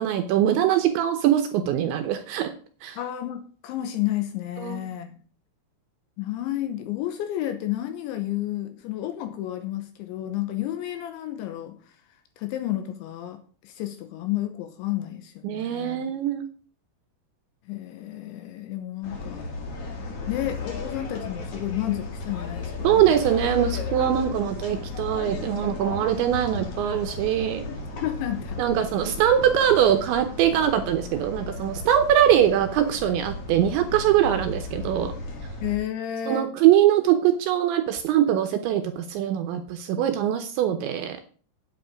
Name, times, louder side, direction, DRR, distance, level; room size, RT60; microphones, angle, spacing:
voice 1, 0.0-2.5 2.8-3.0 4.6-4.8 15.4-16.5 22.8-27.6 28.6-35.1 36.3-41.2, right 10 dB, 75° right, 7 dB, 2.8 m, -22 dB
voice 2, 3.0-5.1 6.2-11.8 12.4-16.1 17.7-19.5 20.3-23.3 27.7-28.6 35.6-36.5, left 13 dB, 75° left, 8 dB, 3.0 m, -31 dB
sound 1, 19.0-35.8, left 3 dB, 50° left, 1.8 m, -35 dB
10.5 x 8.9 x 5.0 m, 0.42 s
omnidirectional pair, 6.0 m